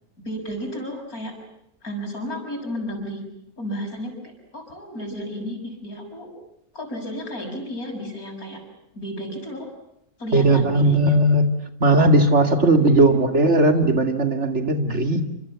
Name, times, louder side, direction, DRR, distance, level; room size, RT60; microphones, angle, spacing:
voice 1, 0.3-1.3 1.8-3.2 3.6-6.3 6.7-8.6 8.9-9.7 10.2-11.2 12.9-13.2, equal, 85° left, 4 dB, 7.1 m, -33 dB
voice 2, 10.3-11.5 11.8-15.2, right 2 dB, 50° right, 6 dB, 2.7 m, -17 dB
28.0 x 26.5 x 7.2 m, 0.79 s
omnidirectional pair, 1.5 m